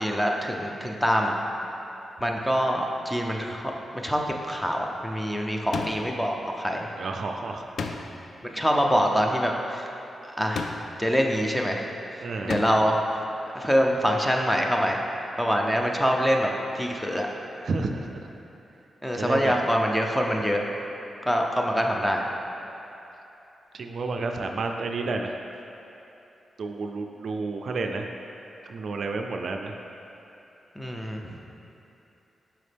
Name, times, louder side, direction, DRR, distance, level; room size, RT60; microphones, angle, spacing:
voice 1, 0.0-1.4 2.2-3.6 4.0-6.9 8.4-9.9 10.2-10.7 11.0-11.9 12.4-13.2 13.5-15.0 15.4-17.3 19.0-20.6 21.3-22.2 30.8-31.2, equal, 5° left, 1 dB, 0.6 m, -25 dB
sound 1, 5.7-6.3 7.8-8.3 10.5-11.1 12.5-13.0, left 4 dB, 65° left, 0.3 m, -33 dB
voice 2, 7.0-7.7 12.2-12.7 17.6-18.3 19.1-19.6 23.7-25.4 26.6-28.1 28.7-29.8, right 3 dB, 65° right, 4 dB, 0.3 m, -30 dB
5.8 x 5.1 x 3.3 m, 2.9 s
cardioid pair, 80°, 0 cm